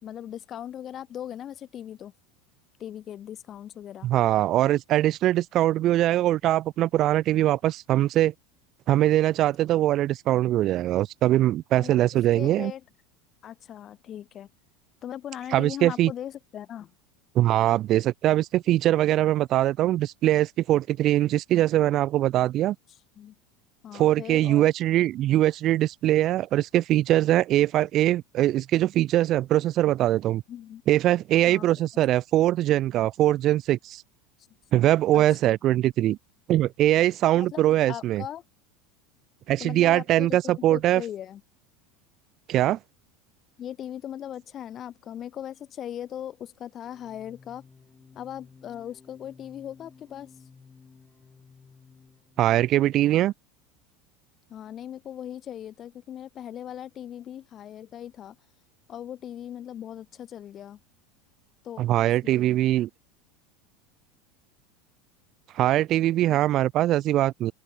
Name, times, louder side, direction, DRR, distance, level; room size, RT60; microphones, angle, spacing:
voice 1, 0.0-2.1 2.8-4.1 11.7-12.0 12.3-12.8 13.4-14.5 15.0-16.9 23.2-23.3 23.8-24.7 30.5-30.8 31.5-31.7 34.7-34.9 35.1-35.2 37.3-37.6 37.9-38.4 39.6-41.4 43.6-47.6 48.1-50.3 54.5-58.4 58.9-60.8 61.6-61.8 62.2-62.6 66.3-66.4, left 10 dB, 30° left, 3.2 m, -39 dB
voice 2, 4.0-8.3 8.9-12.7 15.5-16.1 17.3-22.8 23.9-30.4 30.9-34.0 34.7-36.2 36.5-38.2 39.5-41.0 42.5-42.8 52.4-53.3 61.8-62.9 65.5-67.5, right 14 dB, 40° right, 0.5 m, -22 dB
sound 1, 46.9-52.5, left 5 dB, 15° left, 3.2 m, -54 dB
open air
supercardioid pair, 140°, 0 cm